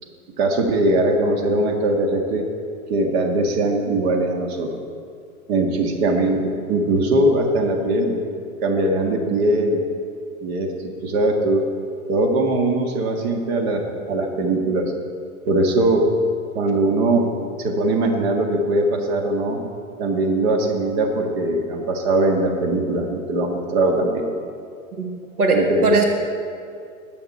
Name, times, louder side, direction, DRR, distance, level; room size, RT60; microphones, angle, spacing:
voice 1, 0.4-2.4 2.9-4.7 5.5-6.4 6.7-8.2 8.6-9.8 10.4-11.6 12.1-14.9 15.5-16.1 16.5-19.6 20.0-24.2 25.5-26.0, right 2 dB, 45° right, 2 dB, 2.1 m, -21 dB
voice 2, 25.0-26.0, right 3 dB, 85° right, 1 dB, 1.8 m, -20 dB
21.0 x 8.6 x 4.4 m, 2.3 s
figure-of-eight pair, 105°, 43 cm